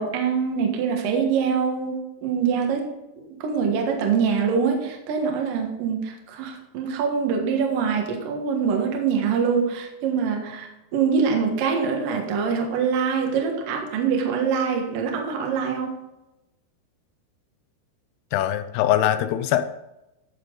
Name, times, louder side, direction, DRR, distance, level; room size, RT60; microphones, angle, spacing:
voice 1, 0.0-16.0, right 6 dB, 60° right, 2 dB, 2.8 m, -24 dB
voice 2, 18.3-19.6, left 12 dB, 80° left, 10 dB, 2.5 m, -22 dB
14.0 x 7.2 x 3.9 m, 0.93 s
omnidirectional pair, 5.2 m